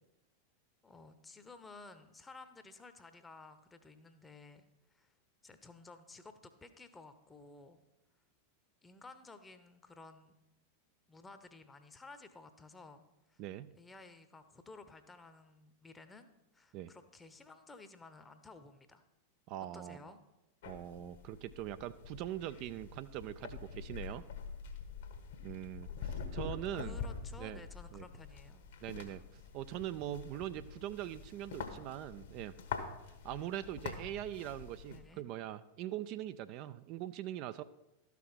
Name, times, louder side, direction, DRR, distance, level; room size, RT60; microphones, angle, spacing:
voice 1, 0.8-5.2 5.4-7.8 8.8-10.3 11.1-13.0 13.3-13.4 13.8-19.0 19.7-20.2 26.7-28.6 34.9-35.2, left 3 dB, 15° left, 10 dB, 0.8 m, -54 dB
voice 2, 13.4-13.7 16.7-16.9 19.5-20.0 20.6-24.3 25.4-27.0 27.4-27.6 27.9-28.0 28.8-32.5 33.2-37.6, right 12 dB, 40° right, 12 dB, 0.4 m, -42 dB
sound 1, 20.6-35.0, left 6 dB, 60° left, 1.3 m, -46 dB
12.5 x 5.9 x 5.6 m, 0.94 s
figure-of-eight pair, 90°, 0 cm